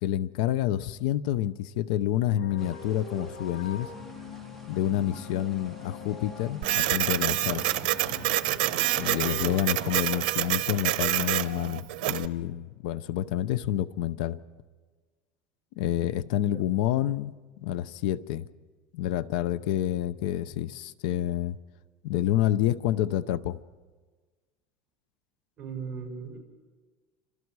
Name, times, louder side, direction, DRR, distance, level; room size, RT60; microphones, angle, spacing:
voice 1, 0.0-3.9 4.7-7.8 9.0-14.4 15.8-18.5 18.9-21.6 22.0-23.6, left 13 dB, 70° left, 17 dB, 0.7 m, -28 dB
sound 1, 2.4-10.2, left 4 dB, 45° left, 2.3 m, -43 dB
sound 2, 2.6-10.2, right 1 dB, 5° left, 2.2 m, -54 dB
Printer, 6.6-12.3, right 16 dB, 80° right, 0.9 m, -27 dB
voice 2, 25.6-26.4, right 6 dB, 25° right, 0 dB, 5.3 m, -38 dB
29.0 x 26.5 x 4.8 m, 1.4 s
cardioid pair, 165°, 5 cm